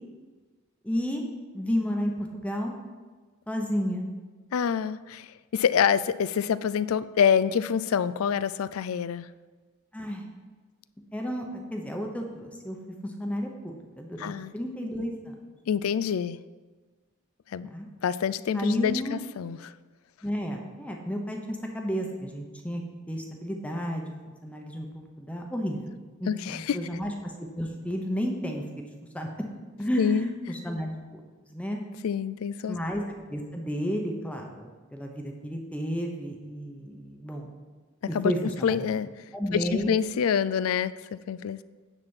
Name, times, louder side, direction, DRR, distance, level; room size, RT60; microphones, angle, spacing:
voice 1, 0.8-1.2 1.5-2.7 3.5-4.1 9.9-10.3 11.1-12.8 13.0-15.3 17.7-17.9 18.5-19.2 20.2-24.1 24.4-25.9 26.2-28.9 29.1-29.3 29.8-31.2 31.5-31.8 32.7-33.0 33.3-37.5 38.1-38.8 39.3-39.9, equal, 5° left, 2 dB, 0.9 m, -32 dB
voice 2, 4.5-9.3 14.2-14.5 15.7-16.4 17.5-17.7 18.0-19.7 26.3-26.8 30.0-30.3 32.0-32.8 38.1-38.3 38.6-39.1 39.5-41.6, left 7 dB, 80° left, 15 dB, 0.4 m, -26 dB
9.8 x 4.2 x 7.1 m, 1.3 s
head